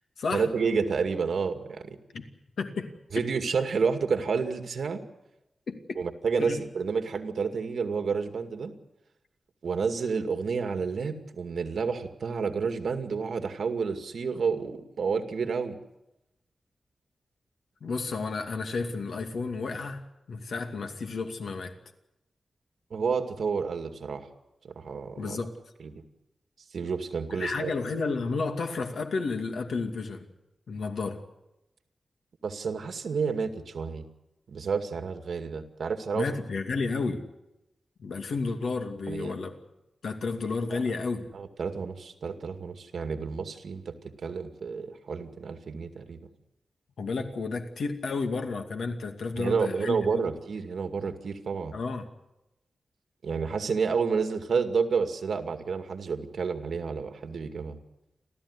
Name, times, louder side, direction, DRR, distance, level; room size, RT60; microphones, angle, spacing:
voice 1, 0.3-2.0 3.1-5.0 6.0-8.7 9.6-15.8 22.9-24.3 24.6-25.4 25.8-26.0 26.7-27.7 32.4-34.0 34.5-36.3 39.1-39.3 40.7-40.8 41.3-46.2 49.4-51.7 53.2-57.8, right 5 dB, 75° right, 6 dB, 2.3 m, -30 dB
voice 2, 2.6-2.9 5.7-6.0 6.4-6.6 17.8-21.7 25.2-25.5 27.3-30.3 30.7-31.2 36.1-37.2 38.0-39.6 40.0-41.3 47.0-50.2 51.7-52.1, left 4 dB, 90° left, 5 dB, 2.5 m, -32 dB
29.5 x 13.5 x 9.9 m, 0.92 s
wide cardioid pair, 175°, 0 cm